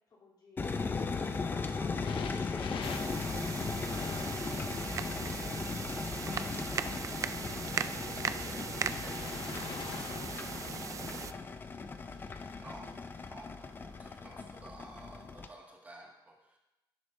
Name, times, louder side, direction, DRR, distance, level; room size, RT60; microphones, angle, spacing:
voice 1, 0.1-0.7 1.3-3.3 6.5-7.2 7.6-11.7, left 2 dB, 50° left, -6 dB, 3.1 m, -57 dB
sound 1, 0.6-15.5, left 4 dB, 25° left, 0.5 m, -37 dB
sound 2, 2.0-5.1 6.0-7.8 8.8-11.4 12.1-12.5 13.3-13.4, left 7 dB, 85° left, 0.6 m, -47 dB
sound 3, 2.8-11.3, right 7 dB, 40° right, 0.3 m, -39 dB
voice 2, 12.6-13.0 13.2-16.6, right 1 dB, 20° right, -2 dB, 1.9 m, -52 dB
11.5 x 10.5 x 2.6 m, 0.97 s
wide cardioid pair, 170°, 8 cm